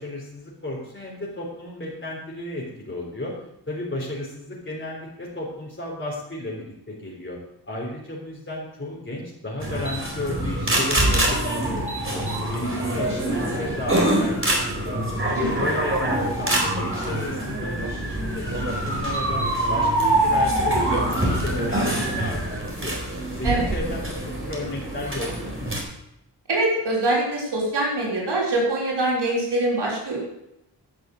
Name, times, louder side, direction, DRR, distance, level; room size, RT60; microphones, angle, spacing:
voice 1, 0.0-3.3 3.7-7.4 7.7-15.0 15.3-19.4 19.7-23.0 23.4-25.7, left 1 dB, 30° left, -4 dB, 3.8 m, -33 dB
sound 1, 9.6-25.8, right 1 dB, 30° right, 4.1 m, -25 dB
voice 2, 15.4-15.7 23.4-23.7 26.5-30.2, right 2 dB, 75° right, -4 dB, 4.0 m, -24 dB
11.5 x 6.2 x 7.8 m, 0.85 s
cardioid pair, 40°, 41 cm